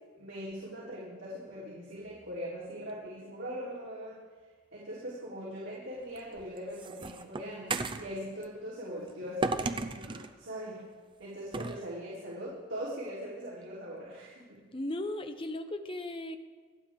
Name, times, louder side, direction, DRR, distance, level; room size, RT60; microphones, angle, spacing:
voice 1, 0.1-4.1 4.7-10.8 11.2-14.6, equal, 60° right, -8 dB, 3.7 m, -41 dB
sound 1, 6.2-8.1 9.4-10.3 11.5-11.8, right 3 dB, 25° right, 0.5 m, -34 dB
voice 2, 14.7-16.4, left 1 dB, 25° left, 8 dB, 0.8 m, -36 dB
27.5 x 9.2 x 3.7 m, 1.4 s
head